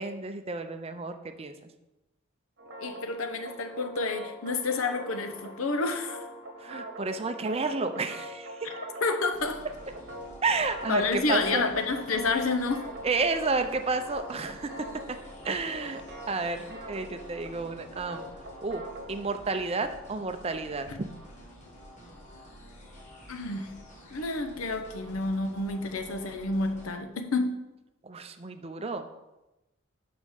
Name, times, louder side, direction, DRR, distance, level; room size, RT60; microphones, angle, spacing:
voice 1, 0.0-1.7 6.6-8.7 10.4-11.7 13.0-14.7 15.1-15.2 15.4-16.0 16.3-18.3 18.6-20.9 28.0-29.1, right 3 dB, 30° right, 8 dB, 0.5 m, -31 dB
sound 1, 2.6-19.3, equal, 55° right, 1.2 m, -43 dB
voice 2, 2.7-6.3 8.6-8.7 9.0-9.7 10.9-12.9 20.9-21.0 23.3-23.7 24.1-27.6, left 3 dB, 90° left, 7 dB, 0.8 m, -29 dB
sound 2, 9.3-26.9, equal, 40° left, 1.5 m, -50 dB
5.5 x 5.1 x 6.4 m, 0.99 s
head